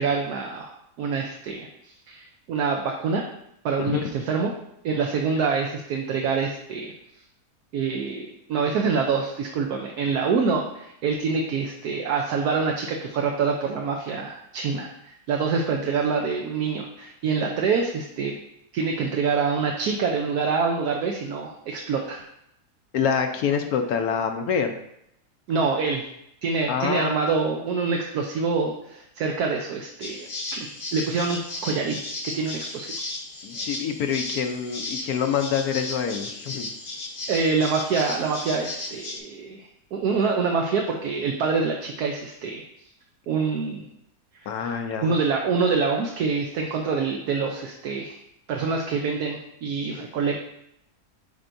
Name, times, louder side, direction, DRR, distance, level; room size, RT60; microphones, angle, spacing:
voice 1, 0.0-3.2 3.6-4.5 4.8-6.9 7.7-18.4 18.7-22.2 25.5-26.0 26.4-32.9 37.3-42.6 43.3-43.9 44.4-48.2 48.5-50.4, right 5 dB, 75° right, 1 dB, 1.1 m, -26 dB
voice 2, 22.9-24.7 26.7-27.2 33.4-36.7 44.5-45.1, left 7 dB, 70° left, 5 dB, 1.0 m, -26 dB
sound 1, 30.0-39.2, left 2 dB, 40° left, 0.8 m, -35 dB
8.8 x 4.5 x 2.6 m, 0.78 s
omnidirectional pair, 1.7 m